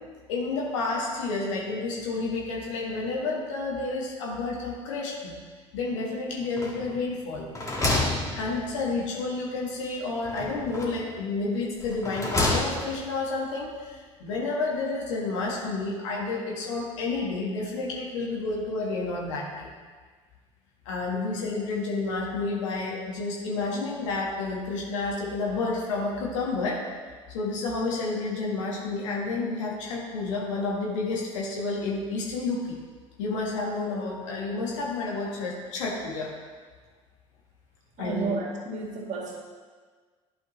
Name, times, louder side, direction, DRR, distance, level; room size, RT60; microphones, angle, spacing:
voice 1, 0.3-5.4 5.7-7.5 8.4-19.7 20.8-26.8 27.3-32.8 33.2-36.3 38.0-38.4, left 3 dB, 75° left, -2 dB, 1.4 m, -30 dB
sound 1, 6.6-7.1 7.4-9.0 10.2-11.1 11.8-13.1, left 2 dB, 20° left, 1.7 m, -29 dB
voice 2, 38.0-39.4, right 4 dB, 45° right, -1 dB, 1.8 m, -32 dB
11.5 x 4.9 x 3.0 m, 1.5 s
figure-of-eight pair, 60°, 16 cm